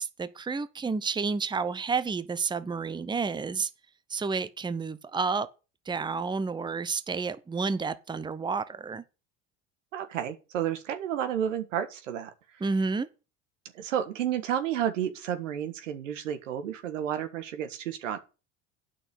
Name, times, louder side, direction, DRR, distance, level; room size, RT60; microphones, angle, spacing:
voice 1, 0.0-3.7 4.1-5.5 5.9-9.0 12.6-13.1, right 4 dB, 10° right, 0.8 m, -30 dB
voice 2, 9.9-12.3 13.7-18.2, right 10 dB, 85° right, 1.6 m, -31 dB
8.9 x 6.3 x 8.0 m
hypercardioid pair, 85°, 37 cm